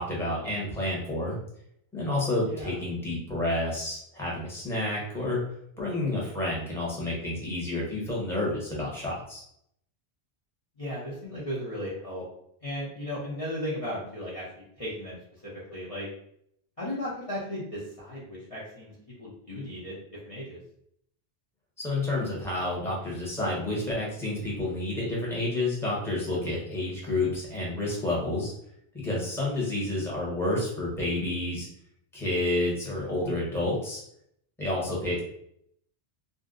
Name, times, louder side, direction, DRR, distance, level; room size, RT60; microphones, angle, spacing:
voice 1, 0.0-1.4 1.9-5.4 5.8-9.4 21.8-28.5 28.9-31.7 32.1-34.0 34.6-35.2, left 2 dB, 5° left, -5 dB, 0.9 m, -29 dB
voice 2, 2.4-2.8 10.8-12.2 12.6-14.4 14.8-15.2 15.4-16.1 16.8-18.9 19.2-20.0 20.2-20.6 34.7-35.1, equal, 35° left, -8 dB, 0.8 m, -35 dB
2.6 x 2.1 x 3.8 m, 0.71 s
omnidirectional pair, 1.1 m